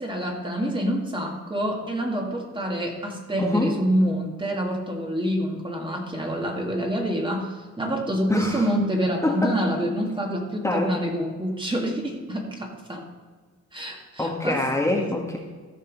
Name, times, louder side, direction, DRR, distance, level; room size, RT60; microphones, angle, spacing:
voice 1, 0.0-13.0 13.7-14.6, equal, 15° right, 1 dB, 2.1 m, -27 dB
voice 2, 3.4-3.7 8.3-8.6 9.2-9.6 10.6-10.9 14.2-15.4, left 2 dB, 10° left, -2 dB, 1.7 m, -24 dB
14.5 x 5.4 x 5.3 m, 1.4 s
cardioid pair, 90°, 30 cm